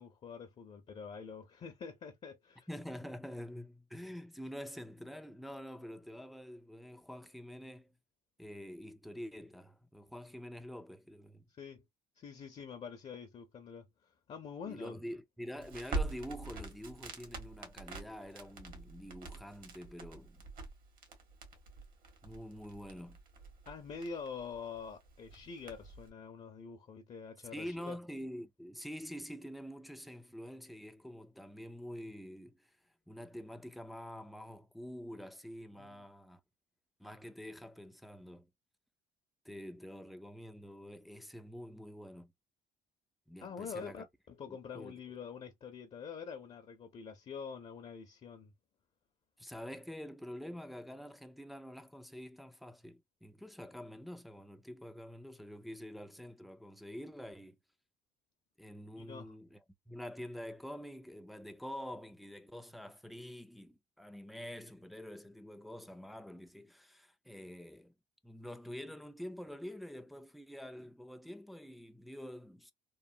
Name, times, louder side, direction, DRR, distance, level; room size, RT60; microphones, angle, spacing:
voice 1, 0.0-2.7 11.6-11.8 12.2-15.0 23.7-28.0 35.8-36.0 43.4-48.5 59.0-59.3, left 6 dB, 40° left, 0.6 m, -46 dB
voice 2, 2.7-7.9 8.4-11.5 14.6-20.4 22.2-23.2 27.5-32.7 33.1-36.4 37.0-38.5 39.4-42.3 43.3-44.0 44.5-45.0 49.4-57.6 58.6-59.6 59.9-67.9 68.2-72.7, equal, ahead, 0.3 m, -47 dB
Crackle, 15.6-26.1, right 3 dB, 55° right, 1.2 m, -45 dB
3.1 x 2.1 x 2.5 m
cardioid pair, 110°, 17 cm